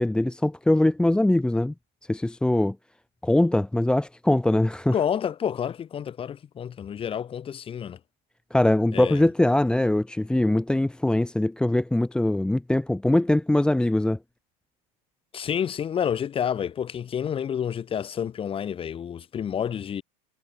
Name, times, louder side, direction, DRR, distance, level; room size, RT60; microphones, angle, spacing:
voice 1, 0.0-1.7 2.1-2.8 3.2-4.9 8.5-14.2, left 1 dB, 5° left, 1.3 m, -22 dB
voice 2, 4.9-8.0 8.9-9.2 15.3-20.0, left 8 dB, 25° left, 6.5 m, -29 dB
supercardioid pair, 140°, 21 cm